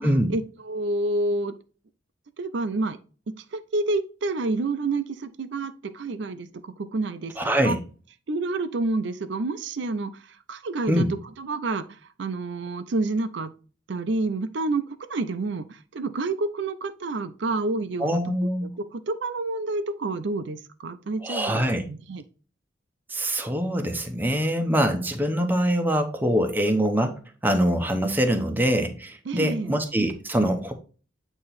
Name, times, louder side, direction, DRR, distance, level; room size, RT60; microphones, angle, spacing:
voice 1, 0.0-1.5 2.4-3.0 3.3-7.8 8.3-11.1 11.4-13.5 13.9-18.2 18.6-22.2 29.3-29.8, right 2 dB, 65° right, 10 dB, 0.5 m, -29 dB
voice 2, 7.4-7.8 10.9-11.1 18.0-18.7 21.2-21.8 23.1-30.7, equal, 10° right, 5 dB, 0.8 m, -24 dB
8.5 x 2.9 x 4.1 m, 0.37 s
head